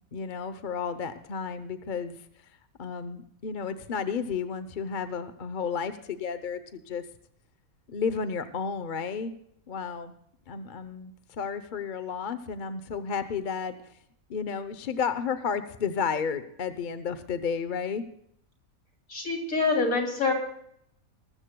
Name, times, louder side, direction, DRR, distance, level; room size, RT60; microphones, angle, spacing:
voice 1, 0.1-2.2 2.8-6.6 6.9-7.0 7.9-9.3 9.7-10.1 10.5-13.7 14.3-18.0, left 6 dB, 40° left, 11 dB, 0.8 m, -32 dB
voice 2, 19.1-20.3, left 4 dB, 65° left, 1 dB, 3.4 m, -26 dB
21.0 x 13.5 x 2.2 m, 0.70 s
omnidirectional pair, 1.5 m